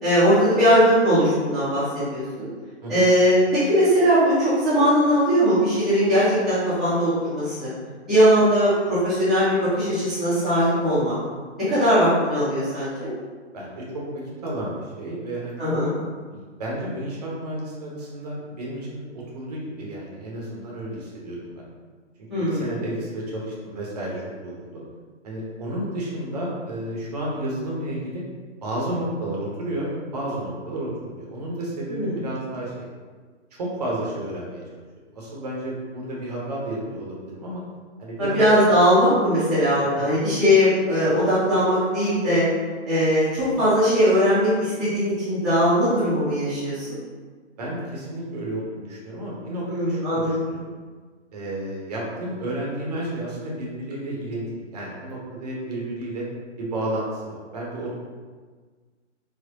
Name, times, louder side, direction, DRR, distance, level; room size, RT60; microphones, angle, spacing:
voice 1, 0.0-2.5 2.9-7.7 8.1-11.1 11.6-13.1 15.6-15.9 22.3-22.7 31.9-32.1 38.2-42.4 42.9-47.0 49.7-50.3, equal, ahead, -17 dB, 0.5 m, -20 dB
voice 2, 13.5-15.7 16.3-21.7 22.5-24.8 25.2-28.2 28.6-32.7 33.5-34.6 35.1-37.6 38.0-38.4 39.8-40.1 47.6-50.6 51.3-56.3 56.6-57.9, right 1 dB, 35° right, -4 dB, 0.7 m, -31 dB
4.2 x 2.1 x 2.8 m, 1.5 s
figure-of-eight pair, 125°, 36 cm